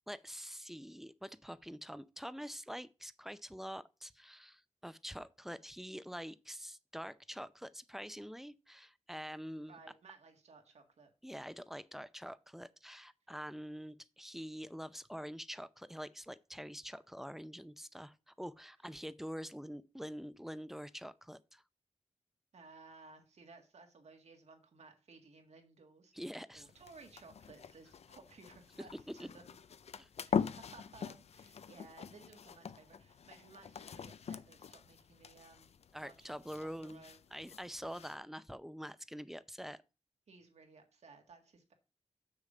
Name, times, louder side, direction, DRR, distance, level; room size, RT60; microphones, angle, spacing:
voice 1, 0.1-9.8 11.2-21.6 26.1-26.7 29.2-29.3 30.0-30.1 35.9-37.0 37.3-39.8, equal, 5° right, 0.5 m, -46 dB
voice 2, 9.7-11.1 22.5-26.1 26.5-29.6 30.2-35.7 36.0-36.3 36.6-37.2 40.3-41.7, right 4 dB, 85° right, 1.8 m, -58 dB
sound 1, 26.5-38.2, left 7 dB, 75° left, 0.5 m, -43 dB
7.1 x 6.6 x 5.0 m
wide cardioid pair, 75°, 11 cm